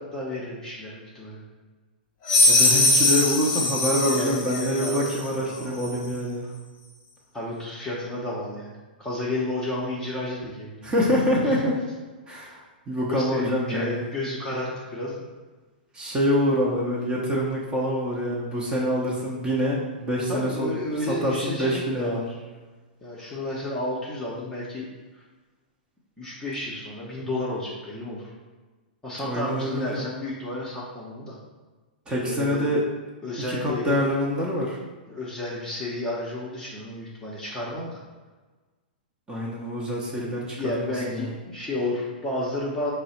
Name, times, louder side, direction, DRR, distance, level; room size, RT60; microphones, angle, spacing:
voice 1, 0.0-1.4 3.6-3.7 4.0-5.8 6.1-6.5 7.3-8.7 9.0-11.7 13.1-15.1 20.3-22.3 23.0-24.9 25.1-25.2 26.2-28.2 29.0-31.4 32.1-32.8 33.2-34.0 35.1-38.0 40.6-42.9, left 1 dB, 10° left, -6 dB, 0.9 m, -32 dB
sound 1, 2.3-5.3, left 2 dB, 40° left, 1.0 m, -21 dB
voice 2, 2.5-6.5 10.8-11.7 12.3-14.1 15.9-22.3 29.2-30.1 32.1-32.8 33.5-34.8 39.3-41.3, equal, 15° right, -5 dB, 0.9 m, -26 dB
4.6 x 2.1 x 4.2 m, 1.3 s
figure-of-eight pair, 110°, 5 cm